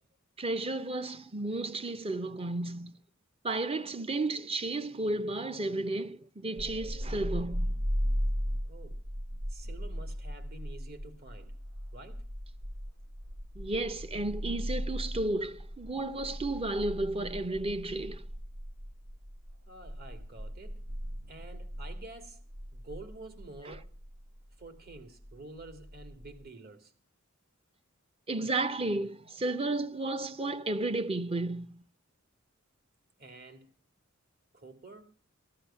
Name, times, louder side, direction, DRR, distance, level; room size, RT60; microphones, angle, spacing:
voice 1, 0.4-3.0 3.4-7.7 13.6-18.2 28.3-31.8, right 2 dB, 30° right, 0.7 m, -33 dB
Looooow Bass, 6.6-26.5, equal, 80° right, 1.2 m, -37 dB
voice 2, 8.6-9.0 9.5-11.6 11.9-12.3 19.7-20.8 21.3-22.4 22.7-23.9 24.6-26.9 33.2-33.7 34.5-35.1, right 2 dB, 50° right, 2.5 m, -49 dB
15.0 x 11.5 x 5.7 m
head